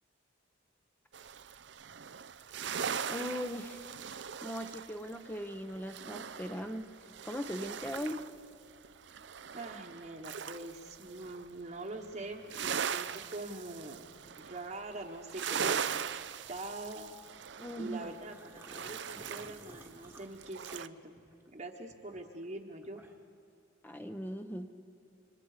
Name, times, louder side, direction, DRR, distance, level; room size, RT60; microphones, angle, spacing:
sound 1, 1.1-8.4 8.7-11.5 11.8-20.9, right 7 dB, 60° right, 0.6 m, -40 dB
voice 1, 3.1-3.9 4.4-6.9 7.2-8.2 17.6-18.1 23.8-24.7, equal, 10° left, 6 dB, 0.8 m, -39 dB
voice 2, 9.5-14.1 14.4-16.2 16.5-17.1 17.8-21.1 21.5-23.0, right 2 dB, 35° right, 1 dB, 1.3 m, -44 dB
sound 2, 18.0-21.5 21.9-23.4, right 1 dB, 10° right, 1.3 m, -55 dB
29.5 x 25.5 x 5.0 m, 2.7 s
head